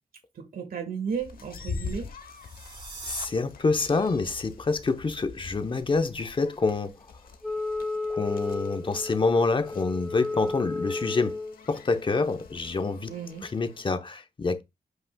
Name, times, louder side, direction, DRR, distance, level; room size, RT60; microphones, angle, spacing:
voice 1, 0.4-2.1 13.1-13.5, right 6 dB, 80° right, 1.8 m, -34 dB
sound 1, 1.1-14.0, left 4 dB, 85° left, 1.0 m, -44 dB
sound 2, 2.2-3.3, right 4 dB, 35° right, 1.7 m, -42 dB
voice 2, 3.1-7.0 8.1-11.4 11.7-13.1 13.5-14.6, left 3 dB, 35° left, 0.9 m, -27 dB
Wind instrument woodwind instrument, 7.4-11.6, left 3 dB, ahead, 1.2 m, -33 dB
7.9 x 5.4 x 2.3 m
wide cardioid pair, 105°, 15 cm